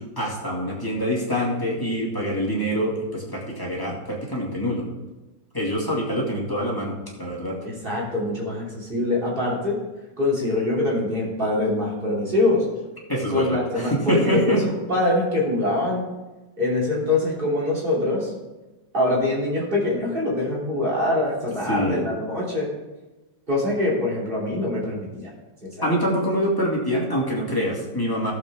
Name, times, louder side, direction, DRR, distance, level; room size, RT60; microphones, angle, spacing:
voice 1, 0.2-4.8 5.5-7.6 13.1-14.6 21.7-22.0 25.8-28.3, equal, 10° left, -4 dB, 2.1 m, -25 dB
voice 2, 7.8-9.8 10.2-12.6 13.3-16.0 16.6-18.3 18.9-22.7 23.5-25.3 25.6-25.9, left 2 dB, 30° right, -6 dB, 3.5 m, -24 dB
16.0 x 7.2 x 3.6 m, 1.1 s
omnidirectional pair, 2.0 m